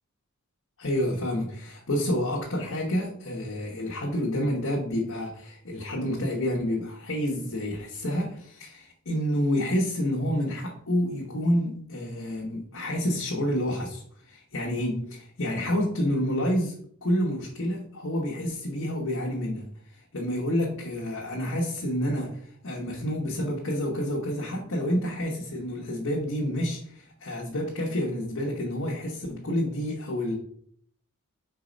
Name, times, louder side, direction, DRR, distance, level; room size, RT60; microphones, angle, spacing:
voice 1, 0.8-16.7 17.0-19.7 19.9-30.3, equal, 60° left, -2 dB, 1.1 m, -29 dB
4.6 x 4.1 x 5.1 m, 0.64 s
head